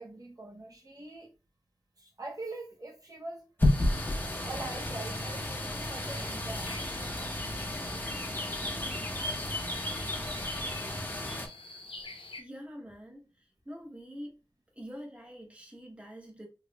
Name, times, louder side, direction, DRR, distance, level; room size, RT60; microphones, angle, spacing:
voice 1, 0.0-1.3 2.0-3.5 4.5-6.7, right 2 dB, 45° right, 0.9 m, -43 dB
sound 1, 3.6-12.4, left 2 dB, 80° left, 0.6 m, -47 dB
sound 2, 3.6-11.5, left 1 dB, 25° left, 0.9 m, -32 dB
voice 2, 12.4-14.3 14.8-16.5, equal, 15° right, 1.0 m, -45 dB
3.5 x 3.1 x 2.3 m
wide cardioid pair, 55°, 9 cm